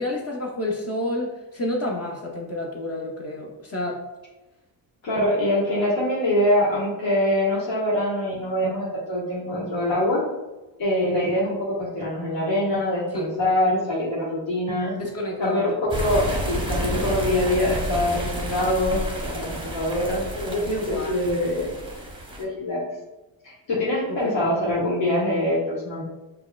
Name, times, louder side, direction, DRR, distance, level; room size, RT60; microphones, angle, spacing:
voice 1, 0.0-4.0 13.1-13.3 14.9-15.7 20.7-21.3 24.1-24.4, left 1 dB, 35° left, 0 dB, 0.6 m, -29 dB
voice 2, 5.0-10.2 10.8-14.9 15.4-21.7 22.4-22.8 23.4-26.0, left 1 dB, 75° left, -8 dB, 1.3 m, -24 dB
sound 1, 15.9-22.4, right 1 dB, 10° right, 0.7 m, -30 dB
5.3 x 2.3 x 2.2 m, 1.1 s
cardioid pair, 90°, 46 cm